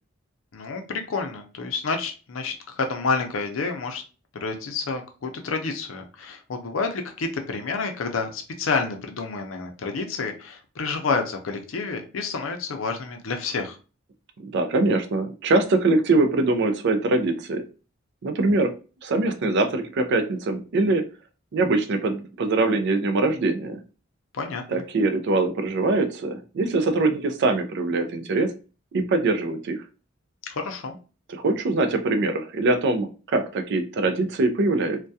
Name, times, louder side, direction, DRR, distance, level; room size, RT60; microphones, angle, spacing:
voice 1, 0.5-4.0 4.4-13.8 24.3-24.6 30.5-31.0, left 4 dB, 75° left, 5 dB, 0.5 m, -29 dB
voice 2, 14.4-17.6 18.2-18.7 19.0-21.0 21.5-23.8 24.7-28.5 28.9-29.8 31.3-35.0, right 2 dB, 60° right, 8 dB, 0.4 m, -23 dB
2.3 x 2.2 x 2.6 m, 0.35 s
head